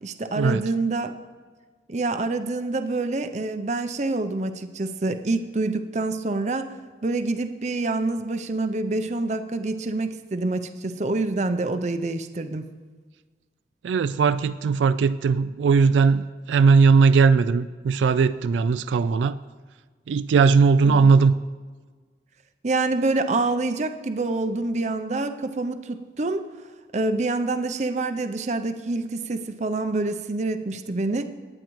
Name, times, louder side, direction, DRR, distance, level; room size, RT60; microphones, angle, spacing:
voice 1, 0.0-1.1 1.9-6.7 7.0-12.7 20.8-21.1 22.6-26.5 26.9-31.2, right 2 dB, 40° right, 9 dB, 0.5 m, -26 dB
voice 2, 13.8-19.4 20.1-21.3, right 5 dB, 90° right, 14 dB, 0.3 m, -19 dB
19.5 x 8.8 x 3.1 m, 1.4 s
head